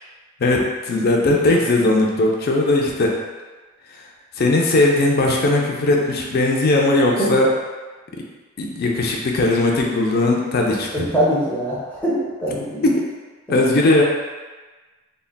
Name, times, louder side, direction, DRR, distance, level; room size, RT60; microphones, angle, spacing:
voice 1, 0.4-3.1 4.4-7.5 8.6-11.1 12.8-13.0 13.5-14.0, left 2 dB, 50° left, 0 dB, 0.4 m, -18 dB
voice 2, 10.9-12.9 13.5-13.6, right 1 dB, 10° left, -8 dB, 0.6 m, -22 dB
3.7 x 2.1 x 2.2 m, 1.3 s
head